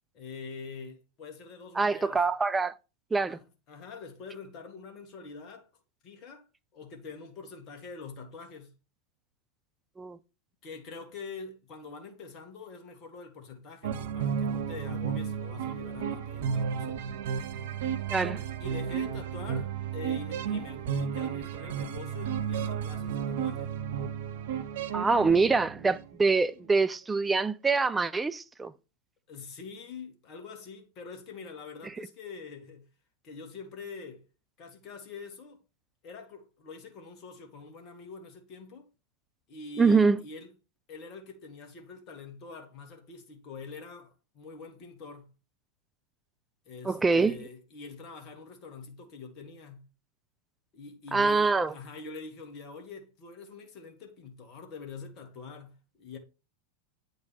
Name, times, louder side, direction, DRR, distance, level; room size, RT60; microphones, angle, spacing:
voice 1, 0.1-2.3 3.3-5.7 6.0-6.5 6.7-8.7 10.6-17.0 18.6-23.8 29.3-32.9 33.2-34.3 34.6-35.6 36.0-38.9 39.5-40.5 40.9-45.3 46.7-49.9 50.7-56.2, left 4 dB, 35° left, 1.7 m, -45 dB
voice 2, 1.8-2.7 3.1-3.4 10.0-10.2 18.1-18.4 24.9-28.7 39.8-40.2 46.8-47.4 51.1-51.7, right 4 dB, 10° right, 0.4 m, -25 dB
sound 1, 13.8-26.1, right 7 dB, 55° right, 0.7 m, -33 dB
8.7 x 3.9 x 4.3 m
figure-of-eight pair, 90°, 0 cm